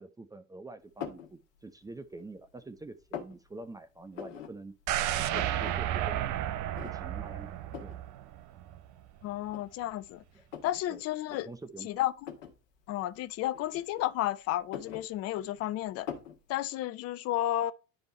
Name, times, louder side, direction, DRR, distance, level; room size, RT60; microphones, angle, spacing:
voice 1, 0.0-4.7 5.1-6.3 6.8-7.9 10.3-10.5 10.9-11.0 11.3-11.9, right 2 dB, 10° right, 0.6 m, -46 dB
sound 1, 1.0-1.3 1.9-2.5 2.8-3.4 4.1-4.5 4.8-4.9 5.1-5.8 6.1-6.2 6.7-7.2 7.7-8.0 8.8-8.9 9.5-10.8 11.2-11.4 12.2-12.6 13.5-14.2 14.5-15.6 16.1-16.4, left 8 dB, 65° left, 1.3 m, -42 dB
sound 2, 4.9-8.8 9.2-9.3, right 12 dB, 50° right, 0.7 m, -32 dB
voice 2, 9.2-10.2 10.6-11.5 11.8-12.3 12.9-16.1 16.5-17.7, left 14 dB, 40° left, 0.6 m, -32 dB
9.8 x 3.5 x 4.2 m
figure-of-eight pair, 65°, 39 cm